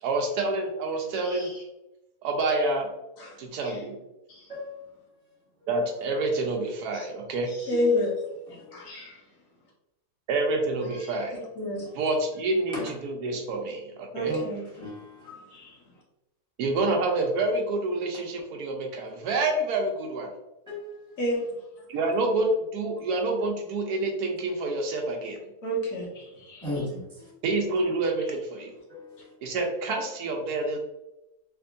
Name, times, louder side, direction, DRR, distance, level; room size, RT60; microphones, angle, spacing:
voice 1, 0.0-1.5 2.2-2.9 3.4-4.0 5.7-7.5 10.3-11.4 12.0-14.3 16.6-20.3 21.9-25.4 27.4-28.7 29.4-30.8, right 2 dB, 85° right, 1.1 m, -27 dB
voice 2, 1.2-1.6 3.2-3.4 3.6-3.8 4.3-4.5 6.9-7.1 7.5-8.2 8.5-9.0 10.9-11.2 11.6-11.9 14.1-14.6 15.2-15.8 21.2-21.4 25.6-26.8, left 1 dB, 60° left, 1.4 m, -30 dB
voice 3, 4.5-4.8 7.7-7.8 12.7-12.8 14.3-14.4 14.8-15.3 20.7-20.9 26.6-27.3 28.9-29.1, left 1 dB, 5° left, 1.1 m, -35 dB
3.4 x 3.0 x 2.5 m
omnidirectional pair, 1.7 m